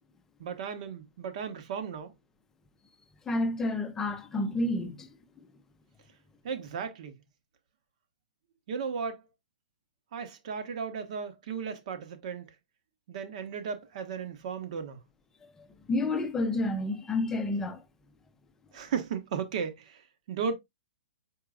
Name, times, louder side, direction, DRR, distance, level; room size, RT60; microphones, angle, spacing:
voice 1, 0.4-2.1 6.4-7.2 8.7-9.2 10.1-12.5 13.1-15.0 18.7-20.6, right 6 dB, 50° right, 1.1 m, -35 dB
voice 2, 3.3-5.1 15.6-17.8, left 2 dB, 10° left, 0.6 m, -30 dB
4.7 x 4.4 x 2.4 m
hypercardioid pair, 155°, 5 cm